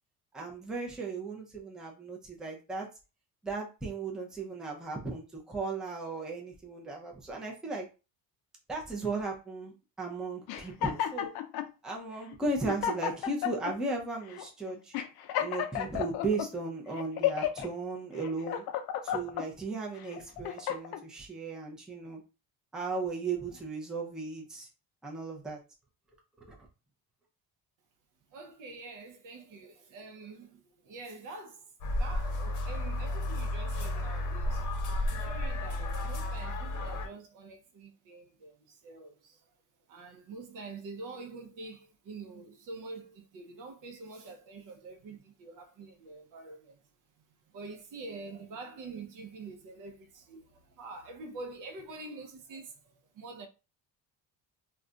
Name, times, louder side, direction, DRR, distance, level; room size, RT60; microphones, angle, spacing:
voice 1, 0.3-2.9 3.4-7.9 8.7-9.7 10.0-11.3 11.8-14.9 15.4-18.6 19.0-22.2 22.7-24.7 25.0-25.6 26.4-26.6, right 3 dB, ahead, 0.5 m, -36 dB
sound 1, 10.5-11.7 12.3-12.4 12.7-13.7 14.3-14.5 14.9-16.5 17.0-17.7 18.2-19.5 20.0-21.0, left 10 dB, 85° left, 0.5 m, -32 dB
voice 2, 28.3-31.7 32.0-39.5 39.9-46.8 47.5-53.5, right 3 dB, 55° right, 0.6 m, -46 dB
sound 2, 31.8-37.1, left 1 dB, 55° left, 0.7 m, -32 dB
2.4 x 2.2 x 3.7 m
cardioid pair, 155°, 37 cm